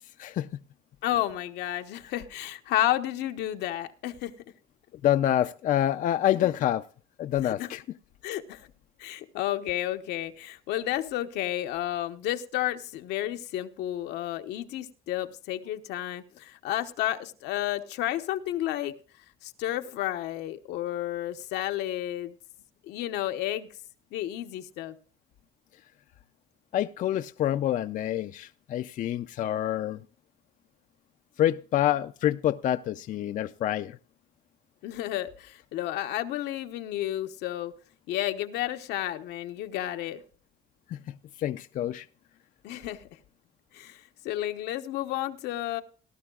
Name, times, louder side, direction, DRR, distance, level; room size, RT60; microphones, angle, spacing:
voice 1, 1.0-4.3 7.4-7.7 8.2-8.7 9.0-18.9 19.4-22.3 22.8-23.7 24.1-25.0 34.8-37.7 38.1-40.2 42.6-43.0 43.7-45.8, left 13 dB, 85° left, 0.9 m, -31 dB
voice 2, 5.0-6.8 7.2-7.8 26.7-30.0 31.4-34.0 40.9-42.1, left 12 dB, 50° left, 0.4 m, -27 dB
18.0 x 12.0 x 2.3 m
cardioid pair, 110°, 17 cm